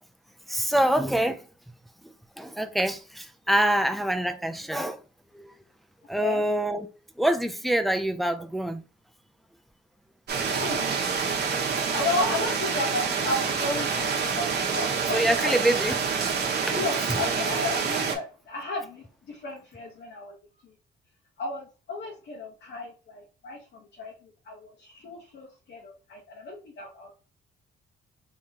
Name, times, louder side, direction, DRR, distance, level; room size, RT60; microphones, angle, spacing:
voice 1, 0.5-1.5 2.0-5.0 5.3-5.5 6.1-6.9 7.2-8.8 15.1-16.0 17.1-17.2, right 1 dB, ahead, 0.4 m, -25 dB
sound 1, 10.3-18.1, right 5 dB, 55° right, 1.1 m, -27 dB
voice 2, 10.5-11.1 11.9-15.5 16.7-20.4 20.6-20.7 21.4-27.1, left 2 dB, 60° left, 1.1 m, -33 dB
3.7 x 3.1 x 2.8 m
cardioid pair, 90°, 20 cm